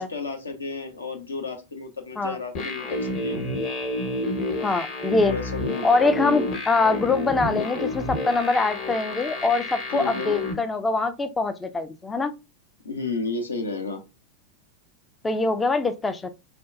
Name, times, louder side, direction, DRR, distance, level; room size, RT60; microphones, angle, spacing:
voice 1, 0.0-3.4 5.3-6.5 9.9-10.4 12.8-14.0, left 3 dB, 75° left, 0.7 m, -32 dB
sound 1, 2.5-10.5, left 1 dB, 40° left, 0.9 m, -30 dB
voice 2, 4.6-5.4 5.8-12.3 15.2-16.3, left 3 dB, 15° left, 0.3 m, -23 dB
4.4 x 2.1 x 2.4 m
figure-of-eight pair, 90°, 0 cm